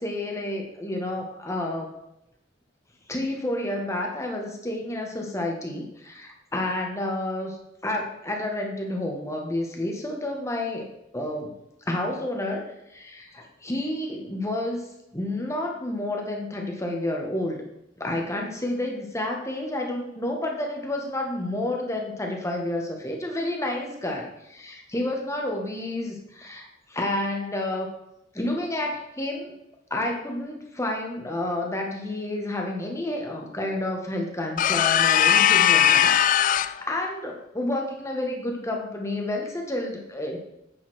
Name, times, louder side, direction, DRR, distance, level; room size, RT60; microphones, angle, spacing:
voice 1, 0.0-1.9 3.1-7.6 7.8-10.9 11.1-11.5 11.8-14.8 15.1-17.6 18.0-27.9 28.3-29.5 29.9-40.4, left 1 dB, 15° left, 1 dB, 1.5 m, -30 dB
sound 1, 34.6-36.8, left 10 dB, 45° left, 0.3 m, -19 dB
9.0 x 5.6 x 6.3 m, 0.82 s
head